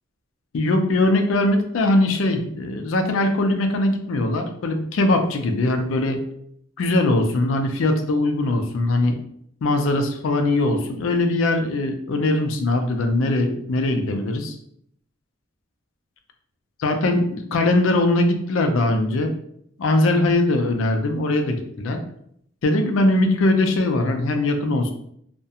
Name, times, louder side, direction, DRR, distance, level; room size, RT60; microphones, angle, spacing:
voice 1, 0.5-6.2 6.8-9.2 9.6-14.6 16.8-19.3 19.8-22.0 22.6-24.9, left 2 dB, 80° left, 6 dB, 0.4 m, -21 dB
2.3 x 2.1 x 2.7 m, 0.69 s
head